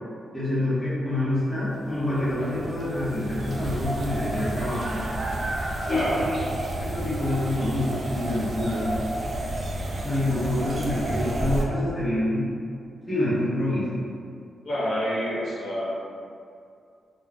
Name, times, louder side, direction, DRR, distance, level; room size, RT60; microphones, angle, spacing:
voice 1, 0.3-5.0 5.9-6.2 6.8-9.0 10.0-12.5 13.1-14.0, left 1 dB, 10° left, -14 dB, 0.9 m, -27 dB
sound 1, 1.8-11.7, right 1 dB, 40° right, 0.3 m, -31 dB
voice 2, 5.9-6.2 14.6-15.9, equal, 65° left, -9 dB, 0.9 m, -27 dB
2.4 x 2.3 x 3.2 m, 2.4 s
wide cardioid pair, 130°, 0 cm